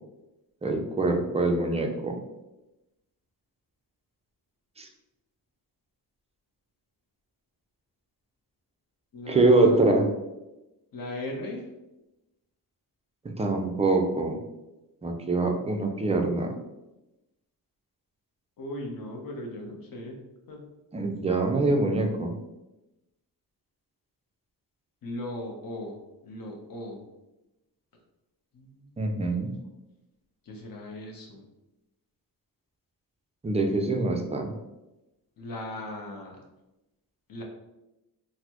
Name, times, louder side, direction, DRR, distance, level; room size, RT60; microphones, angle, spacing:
voice 1, 0.6-2.2 4.8-4.9 9.3-10.1 13.4-14.4 15.0-16.5 20.9-22.3 29.0-29.5 33.4-34.5, right 2 dB, 15° right, 3 dB, 0.3 m, -24 dB
voice 2, 9.1-10.0 10.9-11.6 18.6-20.2 20.5-20.6 25.0-26.0 26.2-27.0 28.5-29.4 30.5-31.4 35.4-36.4 37.3-37.4, left 1 dB, 55° left, 0 dB, 0.8 m, -38 dB
3.9 x 2.1 x 2.9 m, 0.97 s
wide cardioid pair, 125°, 41 cm